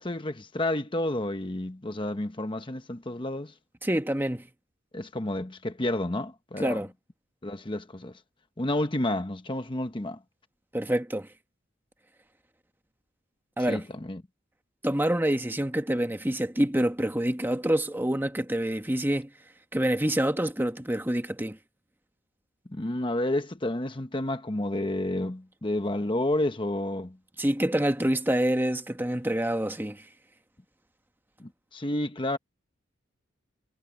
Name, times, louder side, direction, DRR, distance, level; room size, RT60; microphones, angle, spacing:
voice 1, 0.0-3.5 4.9-6.8 7.4-8.1 8.6-10.2 13.7-14.2 22.7-27.2 31.4-32.4, left 1 dB, 25° left, 1.0 m, -30 dB
voice 2, 3.8-4.5 6.6-6.9 10.7-11.3 13.6-13.9 14.8-19.3 19.7-21.6 27.4-30.1, right 1 dB, 10° right, 1.2 m, -27 dB
head